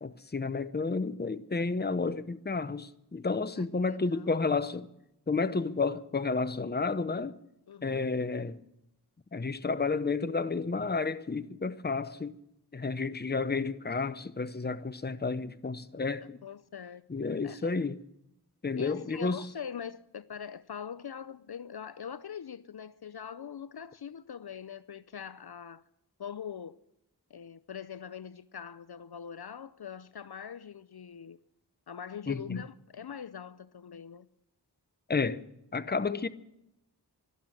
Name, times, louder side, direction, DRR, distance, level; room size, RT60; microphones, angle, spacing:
voice 1, 0.0-4.9 5.3-7.4 7.8-8.6 9.3-12.3 12.7-16.4 17.1-18.0 18.6-19.5 32.3-32.6 35.1-35.4 35.7-36.3, left 4 dB, 25° left, 0.7 m, -31 dB
voice 2, 3.9-4.4 7.7-8.1 16.2-17.0 17.4-17.9 18.7-25.8 26.2-26.8 27.3-31.4 31.9-34.3, left 7 dB, 65° left, 0.6 m, -42 dB
12.5 x 12.0 x 8.9 m
wide cardioid pair, 40°, 42 cm